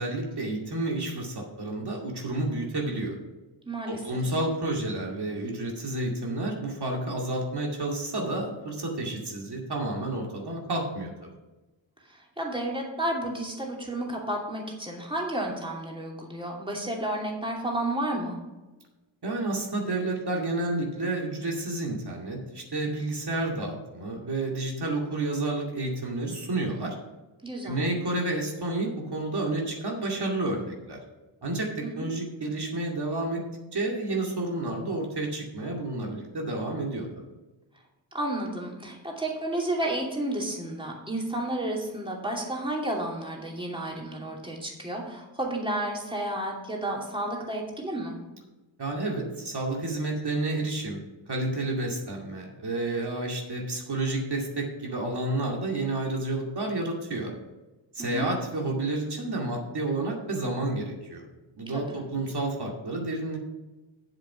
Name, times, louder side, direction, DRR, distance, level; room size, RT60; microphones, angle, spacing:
voice 1, 0.0-3.2 3.9-11.3 19.2-27.0 27.6-31.0 31.4-33.4 33.7-37.1 48.8-51.0 51.3-57.3 57.9-61.3 61.6-63.4, right 2 dB, 55° right, 0 dB, 2.4 m, -30 dB
voice 2, 3.6-4.0 12.1-18.4 27.4-27.8 31.8-32.1 38.1-48.2 58.0-58.3 61.7-62.0, right 1 dB, 10° right, -1 dB, 2.7 m, -32 dB
7.6 x 7.5 x 5.8 m, 1.1 s
cardioid pair, 60°, 46 cm